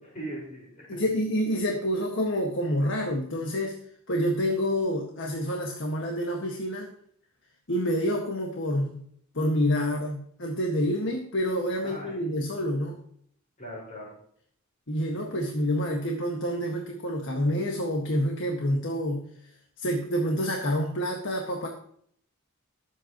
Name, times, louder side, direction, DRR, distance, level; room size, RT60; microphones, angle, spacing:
voice 1, 0.1-1.0 11.8-12.6 13.6-14.1, right 1 dB, 40° left, -4 dB, 5.0 m, -40 dB
voice 2, 0.9-3.7 4.1-6.9 7.7-9.0 9.3-12.9 14.9-19.2 19.8-21.7, equal, 60° left, 1 dB, 1.8 m, -28 dB
22.0 x 8.3 x 3.0 m, 0.64 s
head